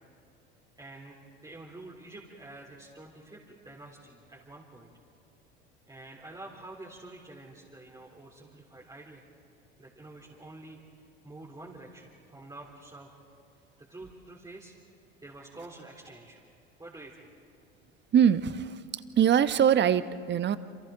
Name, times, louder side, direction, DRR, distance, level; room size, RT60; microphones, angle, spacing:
voice 1, 0.8-1.2 1.4-4.9 5.9-9.2 9.8-13.1 13.8-14.7 15.2-16.4 16.8-17.3, right 2 dB, 10° right, -4 dB, 3.6 m, -48 dB
voice 2, 18.1-20.6, right 9 dB, 35° right, 13 dB, 1.0 m, -23 dB
28.0 x 27.5 x 3.9 m, 2.5 s
hypercardioid pair, 75°, 32 cm